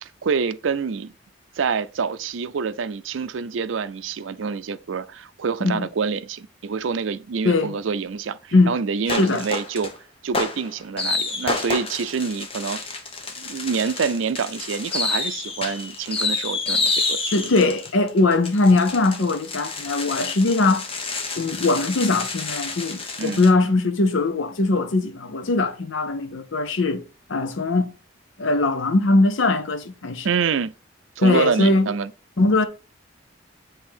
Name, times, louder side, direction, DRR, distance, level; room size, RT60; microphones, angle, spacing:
voice 1, 0.0-1.1 1.6-9.9 10.2-12.8 13.4-17.3 23.2-23.4 30.2-30.7 31.2-32.1, right 5 dB, 75° right, 0.5 m, -26 dB
voice 2, 9.1-9.5 17.3-20.9 21.4-27.0 27.3-27.9 28.4-30.3 31.2-31.9 32.4-32.6, left 2 dB, 75° left, 0.7 m, -20 dB
sound 1, 9.1-9.9 10.3-23.5, left 3 dB, 30° left, 1.1 m, -29 dB
7.5 x 3.4 x 4.4 m
head